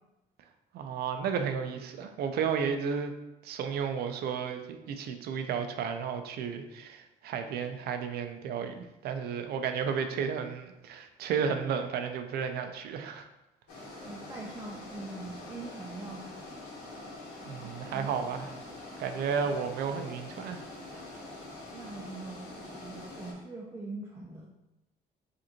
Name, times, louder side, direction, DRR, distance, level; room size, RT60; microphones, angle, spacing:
voice 1, 0.7-3.1 3.4-13.3 17.4-18.5 19.0-20.6 21.0-21.1, right 6 dB, 70° right, 7 dB, 0.5 m, -33 dB
sound 1, 13.7-23.3, left 2 dB, 80° left, 1.2 m, -45 dB
voice 2, 14.0-16.3 17.9-18.1 21.7-24.5, right 3 dB, 15° right, -2 dB, 0.5 m, -42 dB
5.0 x 2.6 x 2.9 m, 0.95 s
cardioid pair, 110°, 17 cm